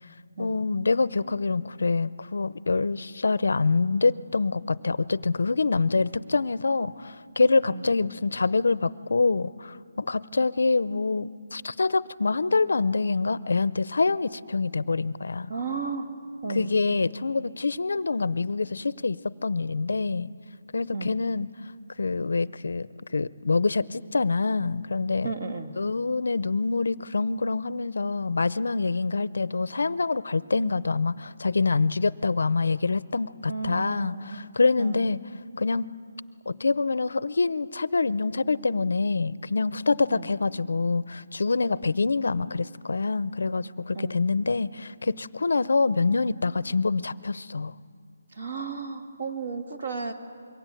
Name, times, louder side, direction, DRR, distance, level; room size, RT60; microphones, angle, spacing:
voice 1, 0.4-15.5 16.5-20.3 20.7-21.5 22.0-22.9 23.1-25.3 25.8-35.2 35.6-35.9 36.5-47.7, left 4 dB, 65° left, 18 dB, 0.6 m, -26 dB
voice 2, 15.5-16.1 16.4-16.7 20.9-21.1 25.2-25.7 33.5-34.4 34.8-35.1 40.1-40.3 43.9-44.2 48.3-50.1, right 4 dB, 40° right, 7 dB, 2.1 m, -33 dB
26.0 x 23.0 x 9.0 m, 2.3 s
hypercardioid pair, 180°, 0 cm